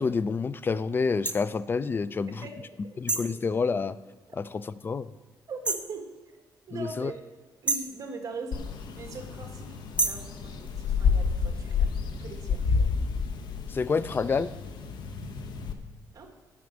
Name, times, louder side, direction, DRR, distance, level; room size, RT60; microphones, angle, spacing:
voice 1, 0.0-2.5 3.0-4.0 4.3-5.1 6.7-7.1 13.7-14.5, left 5 dB, 30° left, 16 dB, 0.4 m, -28 dB
sound 1, 1.2-1.4 3.1-3.4 5.6-5.9 7.7-8.0 10.0-10.3, right 3 dB, 15° right, 0.8 m, -28 dB
voice 2, 2.3-3.0 3.3-3.4 5.5-6.1 6.7-7.2 7.6-8.7 8.9-12.9 16.1-16.3, right 4 dB, 50° right, 3 dB, 1.7 m, -41 dB
sound 2, 8.5-15.7, left 5 dB, 80° left, 0.9 m, -30 dB
9.4 x 6.1 x 7.6 m, 1.3 s
cardioid pair, 110°, 7 cm